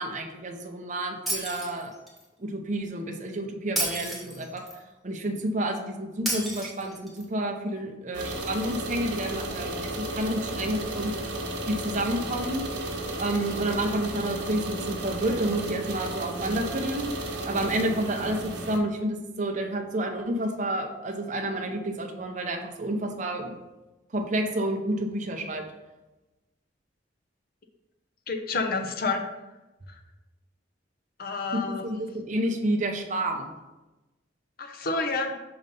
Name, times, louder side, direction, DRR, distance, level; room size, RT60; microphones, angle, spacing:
voice 1, 0.0-1.9 2.4-4.6 5.0-11.1 11.7-12.7 13.2-23.5 24.1-25.6 31.5-33.5, right 1 dB, 40° right, 3 dB, 0.7 m, -30 dB
Shatter, 1.3-2.2 3.8-4.8 6.3-7.2, right 1 dB, ahead, 1.1 m, -31 dB
sound 1, 8.1-18.8, right 1 dB, 70° right, 1.1 m, -33 dB
voice 2, 28.3-29.2 29.9-30.0 31.2-31.9 34.6-35.4, left 3 dB, 50° left, 4 dB, 0.7 m, -29 dB
5.4 x 3.9 x 5.3 m, 1.1 s
head